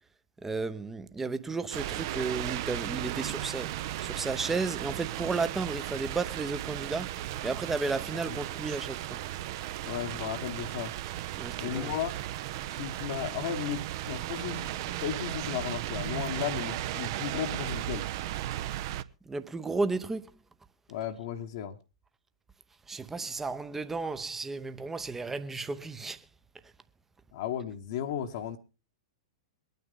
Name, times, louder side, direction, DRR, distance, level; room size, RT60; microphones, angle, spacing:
voice 1, 0.4-9.2 11.3-11.9 19.2-20.3 22.9-26.3, right 4 dB, 10° right, 0.8 m, -33 dB
sound 1, 1.7-19.0, right 14 dB, 45° right, 0.6 m, -36 dB
voice 2, 9.8-10.9 11.6-12.2 12.7-18.1 20.9-21.8 27.3-28.6, left 9 dB, 50° left, 1.1 m, -35 dB
22.5 x 9.4 x 3.7 m
figure-of-eight pair, 100°, 3 cm